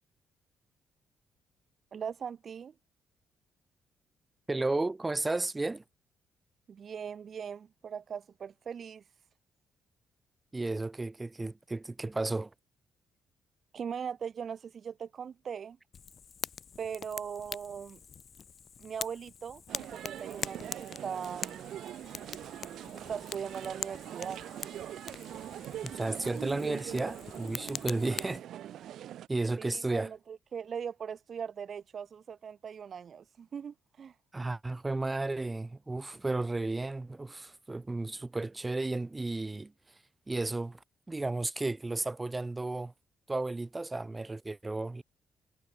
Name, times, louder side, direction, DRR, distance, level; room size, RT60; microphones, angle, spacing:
voice 1, 1.9-2.7 6.7-9.0 13.7-15.8 16.8-18.0 18.8-21.8 22.9-24.4 29.6-34.1, right 7 dB, 50° right, 1.9 m, -40 dB
voice 2, 4.5-5.8 10.5-12.5 25.8-28.4 29.3-30.1 34.3-39.7 40.3-42.9 43.3-45.0, right 2 dB, 20° right, 2.1 m, -33 dB
Fire, 15.9-28.4, left 7 dB, 50° left, 1.2 m, -44 dB
sound 1, 19.7-29.3, right 11 dB, 75° right, 3.6 m, -43 dB
cardioid pair, 90°, 0 cm